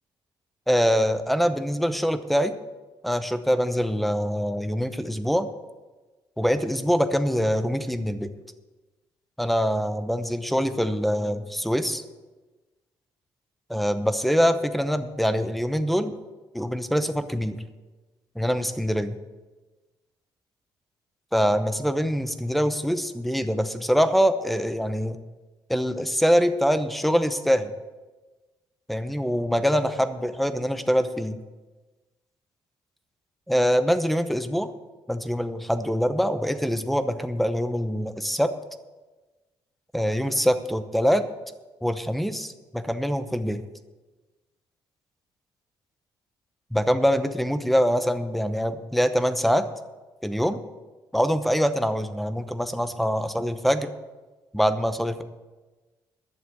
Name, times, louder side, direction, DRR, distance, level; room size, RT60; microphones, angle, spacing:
voice 1, 0.7-2.6 3.0-5.5 6.4-8.3 9.4-12.0 13.7-16.1 16.5-17.6 18.4-19.2 21.3-25.2 25.7-27.7 28.9-31.4 33.5-34.7 35.1-38.5 39.9-41.2 41.8-43.6 46.7-49.7 50.2-50.6 51.1-53.9 54.5-55.2, equal, ahead, 11 dB, 0.8 m, -24 dB
11.5 x 7.0 x 7.9 m, 1.2 s
cardioid pair, 105°, 9 cm